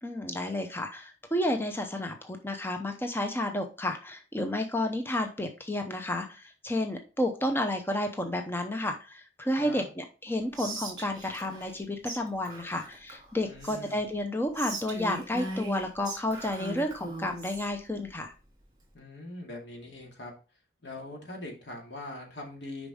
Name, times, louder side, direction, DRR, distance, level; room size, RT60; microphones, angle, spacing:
voice 1, 0.0-18.3, left 1 dB, 10° left, 5 dB, 0.6 m, -31 dB
Whispering, 10.5-11.8 12.0-12.2 12.4-14.0 14.5-17.7, right 2 dB, 25° right, 2.5 m, -39 dB
voice 2, 13.4-14.1 18.9-20.3 20.8-22.9, left 2 dB, 80° left, 0 dB, 2.3 m, -42 dB
6.7 x 5.2 x 3.6 m, 0.34 s
head